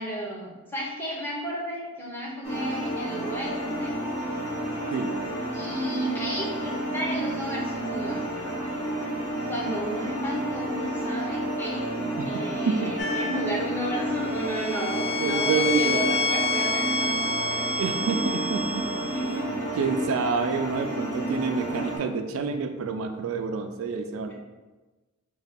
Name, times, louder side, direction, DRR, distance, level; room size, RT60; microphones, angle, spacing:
voice 1, 0.0-3.9 5.5-8.2 9.5-11.9 12.2-17.1 19.0-19.7 24.3-24.4, equal, 10° left, -3 dB, 0.7 m, -33 dB
sound 1, 2.4-22.0, right 1 dB, 35° left, 1.3 m, -31 dB
sound 2, 13.0-13.5 14.3-19.4, left 3 dB, 50° left, 0.5 m, -28 dB
voice 2, 15.2-16.2 17.8-18.9 19.2-19.5 19.8-24.3, right 5 dB, 65° right, 6 dB, 0.3 m, -28 dB
3.9 x 2.2 x 4.2 m, 1.2 s
head